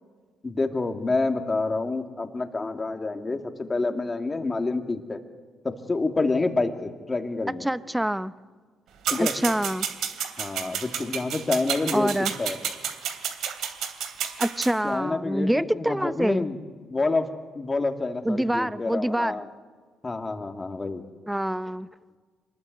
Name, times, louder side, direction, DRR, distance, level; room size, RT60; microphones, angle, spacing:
voice 1, 0.4-5.2 5.6-7.7 9.1-9.4 10.4-12.6 14.8-16.6 16.9-19.5 20.0-21.0, left 3 dB, 25° left, 5 dB, 2.6 m, -28 dB
voice 2, 7.6-8.3 9.2-9.9 11.9-12.3 14.4-16.4 18.2-19.4 21.3-21.9, right 1 dB, 5° right, 14 dB, 0.9 m, -26 dB
sound 1, 9.0-14.7, right 8 dB, 80° right, 2.9 m, -30 dB
25.0 x 20.5 x 9.4 m, 1.5 s
cardioid pair, 90°, 0 cm